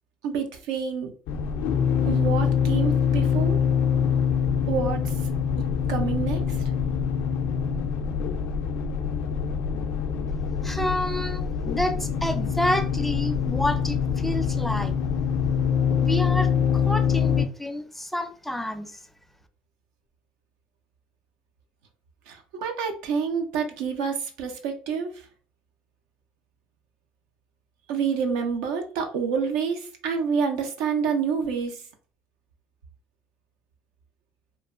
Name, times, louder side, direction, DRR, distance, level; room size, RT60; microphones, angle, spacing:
voice 1, 0.2-1.1 2.0-3.6 4.7-5.1 5.6-6.4 22.3-25.2 27.9-31.8, right 6 dB, 85° right, 0.5 m, -28 dB
sound 1, 1.3-17.5, left 7 dB, 80° left, 0.4 m, -24 dB
voice 2, 10.6-14.9 16.0-19.0, left 1 dB, 5° left, 0.4 m, -29 dB
3.0 x 2.1 x 2.4 m
supercardioid pair, 80°, 3 cm